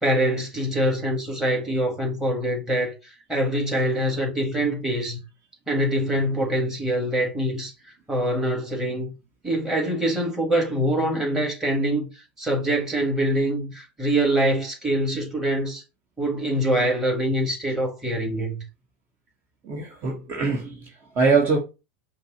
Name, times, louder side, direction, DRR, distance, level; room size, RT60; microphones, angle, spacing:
voice 1, 0.0-5.2 5.7-7.7 8.1-9.1 9.4-12.1 12.4-15.8 16.2-18.6, right 1 dB, 5° right, 1.8 m, -24 dB
voice 2, 19.6-21.6, right 4 dB, 35° right, 1.1 m, -23 dB
5.2 x 2.0 x 3.8 m
hypercardioid pair, 95°, 7 cm